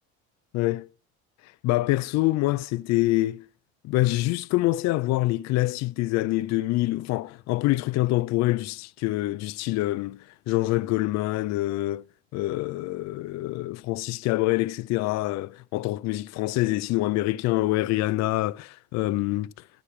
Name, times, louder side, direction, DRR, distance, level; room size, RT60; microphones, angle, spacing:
voice 1, 0.5-0.9 1.6-3.5 3.8-12.0 12.3-19.5, left 18 dB, 55° left, 0.4 m, -25 dB
11.5 x 5.1 x 5.8 m
supercardioid pair, 80°, 32 cm